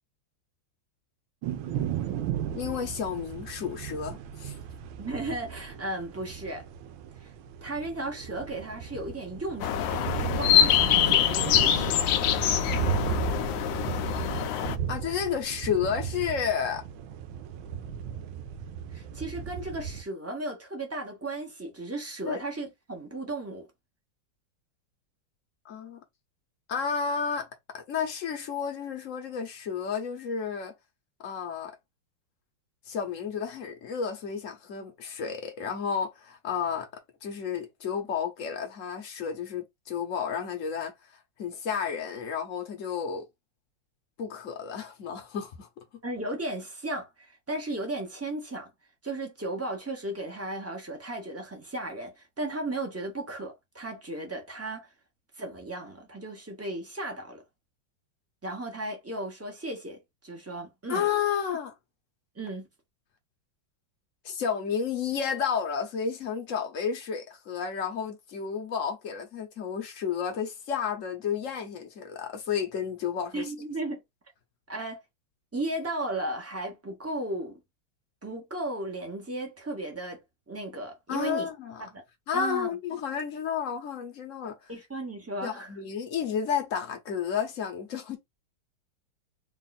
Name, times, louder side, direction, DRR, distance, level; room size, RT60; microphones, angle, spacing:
sound 1, 1.4-20.0, right 8 dB, 80° right, 1.3 m, -35 dB
voice 1, 2.5-4.6 14.9-16.8 22.3-22.4 25.6-26.0 26.7-27.5 27.7-30.7 31.2-31.8 32.9-36.9 37.2-43.3 44.2-45.7 60.9-61.7 64.2-73.5 81.1-81.9 82.3-84.7 85.4-88.2, left 7 dB, 50° left, 1.0 m, -31 dB
voice 2, 5.0-6.7 7.2-7.3 7.6-12.0 18.9-23.7 46.0-48.7 49.0-54.9 55.4-57.4 58.4-61.1 62.3-62.7 73.3-74.0 74.7-75.0 75.5-77.6 78.2-81.5 81.8-82.0 82.3-82.7 84.7-85.7, right 2 dB, 15° right, 0.6 m, -35 dB
sound 2, 9.6-14.7, left 10 dB, 75° left, 1.2 m, -24 dB
3.5 x 2.5 x 4.0 m
omnidirectional pair, 2.3 m